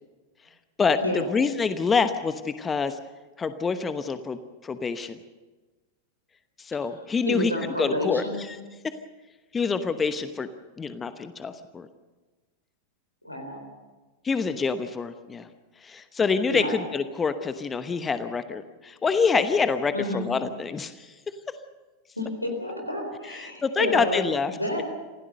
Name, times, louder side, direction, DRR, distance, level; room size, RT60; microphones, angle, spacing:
voice 1, 0.8-3.0 3.4-5.2 6.6-7.5 7.8-8.6 9.5-10.5 10.8-11.9 14.2-15.5 15.8-21.1 23.2-24.8, left 5 dB, 15° left, 11 dB, 1.0 m, -26 dB
voice 2, 7.3-8.4 13.2-13.6 16.5-16.7 19.9-20.2 22.2-24.2 24.5-24.8, left 1 dB, 90° left, 3 dB, 4.2 m, -29 dB
27.0 x 16.5 x 6.6 m, 1.2 s
figure-of-eight pair, 90°, 0 cm